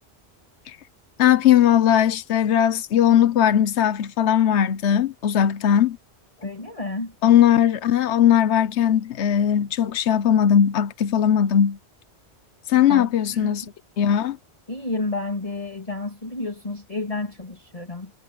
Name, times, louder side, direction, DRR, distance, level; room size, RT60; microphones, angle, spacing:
voice 1, 1.2-6.0 7.2-11.8 12.7-13.6 14.0-14.4, left 9 dB, 80° left, 1.1 m, -19 dB
voice 2, 6.4-7.1 12.9-13.6 14.7-18.1, left 2 dB, 30° left, 2.9 m, -31 dB
omnidirectional pair, 1.1 m